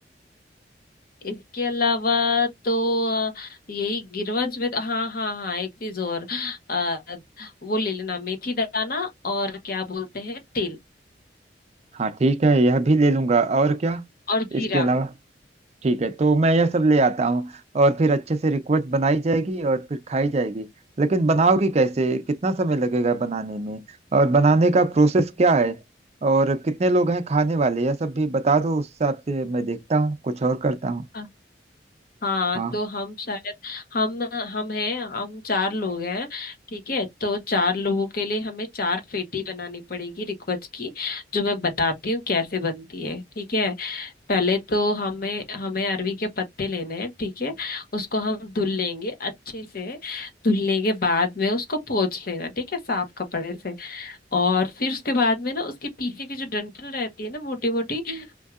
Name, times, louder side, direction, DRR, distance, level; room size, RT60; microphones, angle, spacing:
voice 1, 1.2-10.8 14.3-14.9 31.1-31.3 32.2-58.3, left 3 dB, 55° left, 1.0 m, -27 dB
voice 2, 11.9-14.0 14.5-15.1 15.8-20.7 21.0-23.8 24.1-25.8 26.2-31.0 32.5-32.7, right 3 dB, 40° right, 0.5 m, -21 dB
4.4 x 2.7 x 2.4 m
head